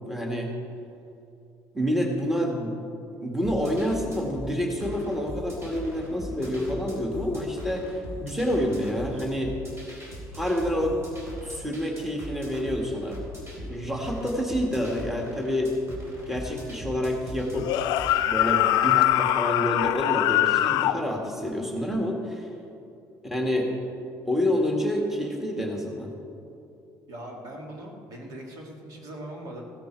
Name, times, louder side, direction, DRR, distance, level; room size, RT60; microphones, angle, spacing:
voice 1, 0.1-0.5 1.7-2.9 3.2-9.5 10.3-11.0 11.4-13.2 13.6-15.8 16.3-17.7 18.1-22.5 23.2-23.7 24.3-26.1, equal, 5° right, 0 dB, 1.8 m, -28 dB
sound 1, 3.4-18.2, equal, 35° right, 4.1 m, -40 dB
sound 2, 17.6-21.0, left 13 dB, 80° left, 0.5 m, -22 dB
voice 2, 27.1-29.6, right 1 dB, 60° right, 0 dB, 2.6 m, -40 dB
16.0 x 13.0 x 4.6 m, 2.7 s
cardioid pair, 115°, 7 cm